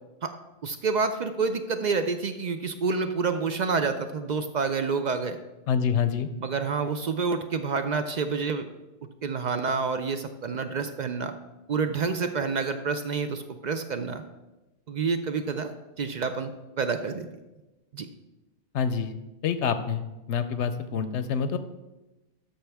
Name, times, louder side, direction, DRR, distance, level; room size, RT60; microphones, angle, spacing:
voice 1, 0.6-5.4 6.4-8.6 9.2-11.3 11.7-14.2 14.9-15.7 16.0-16.5 16.8-17.3 17.9-18.1, right 5 dB, 55° right, 8 dB, 0.5 m, -28 dB
voice 2, 5.7-6.3 18.7-19.1 19.4-21.6, left 7 dB, 75° left, 11 dB, 0.9 m, -27 dB
13.0 x 5.7 x 3.4 m, 1.1 s
omnidirectional pair, 1.2 m